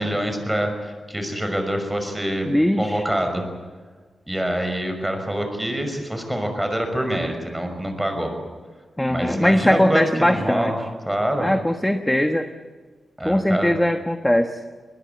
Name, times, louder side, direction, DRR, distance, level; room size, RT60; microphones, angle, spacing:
voice 1, 0.0-2.5 2.8-3.4 4.3-8.3 9.1-10.8 11.1-11.5 13.2-13.8, right 1 dB, 10° right, 5 dB, 6.0 m, -25 dB
voice 2, 2.5-3.0 9.0-10.7 11.4-12.5 13.2-14.6, left 1 dB, 5° left, 6 dB, 1.3 m, -20 dB
21.5 x 21.0 x 9.0 m, 1.4 s
wide cardioid pair, 90°, 0 cm